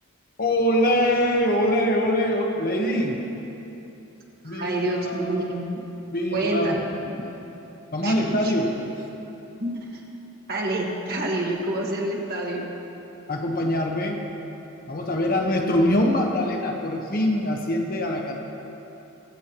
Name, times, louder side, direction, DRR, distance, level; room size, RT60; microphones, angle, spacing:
voice 1, 0.4-3.2 4.4-4.8 5.0-5.7 6.1-6.8 7.9-8.7 13.3-14.2 14.9-18.4, left 1 dB, 40° left, 1 dB, 1.1 m, -23 dB
voice 2, 4.4-5.8 6.3-7.1 8.0-8.5 9.6-10.0 10.5-12.7, right 1 dB, 45° right, -1 dB, 1.5 m, -28 dB
22.0 x 8.3 x 3.0 m, 3.0 s
head